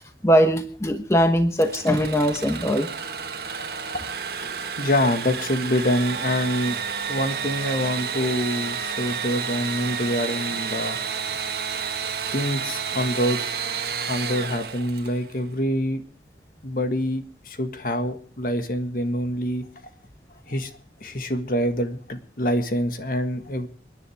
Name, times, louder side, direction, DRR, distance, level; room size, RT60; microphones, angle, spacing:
voice 1, 0.2-2.9, equal, 15° left, 6 dB, 1.0 m, -20 dB
Engine / Sawing, 1.6-15.3, right 6 dB, 55° right, 1.6 m, -30 dB
voice 2, 4.4-6.8 7.1-11.0 12.3-13.8 14.1-16.0 16.6-19.6 20.5-20.7 21.0-23.7, equal, 50° left, 8 dB, 1.7 m, -26 dB
29.0 x 10.0 x 3.5 m, 0.42 s
head